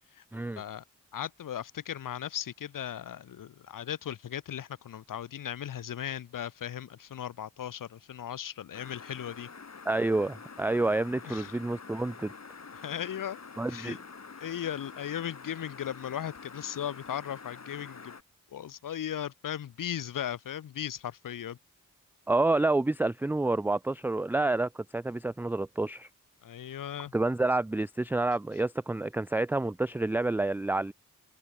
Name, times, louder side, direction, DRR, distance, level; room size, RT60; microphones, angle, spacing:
voice 1, 1.1-9.5 11.3-11.6 12.7-13.4 13.7-14.0 14.4-18.1 18.5-21.6 26.4-27.1, left 10 dB, 90° left, 0.8 m, -37 dB
sound 1, 8.7-18.2, left 5 dB, 55° left, 5.3 m, -47 dB
voice 2, 9.9-12.3 13.6-14.0 22.3-26.1 27.1-30.9, right 2 dB, 5° right, 0.3 m, -28 dB
wide cardioid pair, 90°, 32 cm